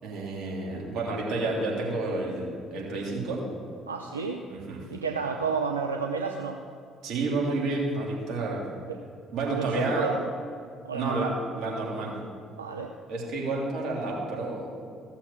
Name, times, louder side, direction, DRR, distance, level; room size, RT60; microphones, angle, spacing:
voice 1, 0.0-3.4 4.5-4.8 7.0-8.6 9.3-10.1 10.9-12.2 13.1-14.7, right 2 dB, 60° right, -3 dB, 3.4 m, -30 dB
voice 2, 3.9-4.4 4.9-6.6 8.9-9.0 9.5-10.2 10.8-11.4 12.6-12.9, right 5 dB, 90° right, 2 dB, 0.5 m, -31 dB
15.5 x 7.1 x 6.3 m, 2.3 s
figure-of-eight pair, 50°, 0 cm